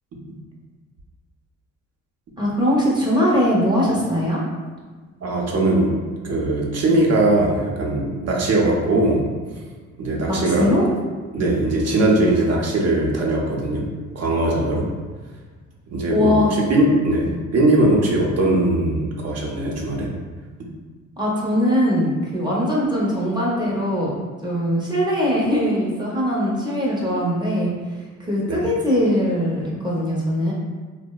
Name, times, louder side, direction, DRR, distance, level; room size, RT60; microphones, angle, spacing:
voice 1, 2.4-4.4 10.3-10.9 16.1-16.5 17.2-17.4 21.2-24.1 24.4-27.7 28.2-30.5, equal, 15° right, -5 dB, 0.6 m, -21 dB
voice 2, 5.2-6.0 6.2-9.2 10.0-10.7 11.3-13.8 14.1-14.9 15.9-20.1 28.5-28.6, right 1 dB, 55° right, -2 dB, 0.6 m, -20 dB
2.7 x 2.1 x 2.2 m, 1.4 s
cardioid pair, 90°, 30 cm